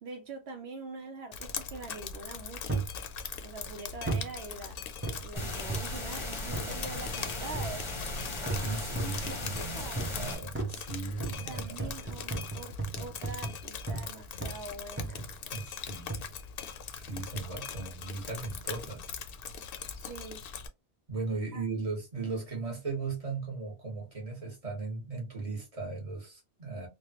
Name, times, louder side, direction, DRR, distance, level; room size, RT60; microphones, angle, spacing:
voice 1, 0.0-2.9 3.4-4.8 5.2-7.9 9.2-10.1 11.5-15.2 20.0-20.4 21.5-21.6, right 3 dB, 80° right, 0.8 m, -44 dB
Drip, 1.3-20.7, left 6 dB, 65° left, 0.7 m, -41 dB
sound 1, 2.7-3.0 4.1-4.4 5.0-6.0 6.5-6.8 7.5-7.9 8.5-9.3 10.0-10.2 10.5-14.1 14.4-14.7 15.0-15.4 16.1-16.3 17.2-17.5 18.1-18.2, right 3 dB, 15° right, 0.5 m, -36 dB
sound 2, 5.4-10.4, left 2 dB, 30° left, 0.7 m, -37 dB
voice 2, 8.4-11.9 15.5-16.2 16.9-19.1 21.1-26.9, right 3 dB, 35° right, 1.4 m, -37 dB
3.2 x 2.2 x 2.8 m
omnidirectional pair, 1.1 m